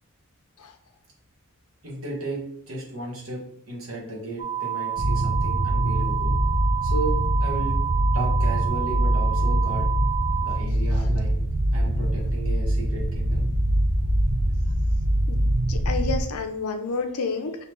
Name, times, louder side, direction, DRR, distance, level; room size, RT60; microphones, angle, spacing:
voice 1, 1.8-3.4 3.7-6.3 6.8-7.1 7.4-7.7 8.1-9.9 10.4-11.3 11.7-13.5, right 2 dB, 65° right, -4 dB, 1.4 m, -34 dB
sound 1, 4.4-10.6, right 10 dB, 25° right, 0.3 m, -29 dB
sound 2, 5.0-16.2, right 1 dB, 85° right, 0.9 m, -23 dB
voice 2, 15.7-17.6, left 4 dB, 85° left, 6 dB, 0.6 m, -29 dB
5.3 x 2.9 x 3.0 m, 0.69 s
head